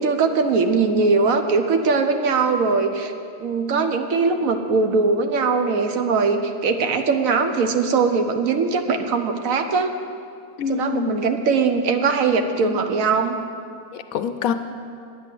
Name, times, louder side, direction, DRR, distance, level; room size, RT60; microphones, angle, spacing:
voice 1, 0.0-3.1 3.4-9.9 10.7-13.3, right 4 dB, 65° right, 6 dB, 1.1 m, -21 dB
voice 2, 10.6-11.2 12.6-12.8 13.9-14.5, left 6 dB, 70° left, 9 dB, 0.9 m, -25 dB
9.9 x 9.1 x 7.5 m, 2.4 s
omnidirectional pair, 1.7 m